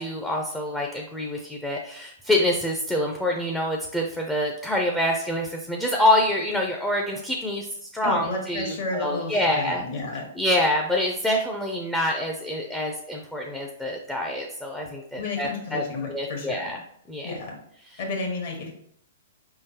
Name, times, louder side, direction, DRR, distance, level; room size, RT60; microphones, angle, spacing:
voice 1, 0.0-7.7 7.9-9.8 10.4-15.8 16.1-16.8 17.1-17.3, left 1 dB, 5° left, 0 dB, 0.4 m, -26 dB
voice 2, 8.0-10.3 15.1-16.7 17.2-17.5 18.0-18.7, left 3 dB, 60° left, 0 dB, 1.5 m, -31 dB
4.8 x 3.7 x 2.8 m, 0.70 s
hypercardioid pair, 150°, 0 cm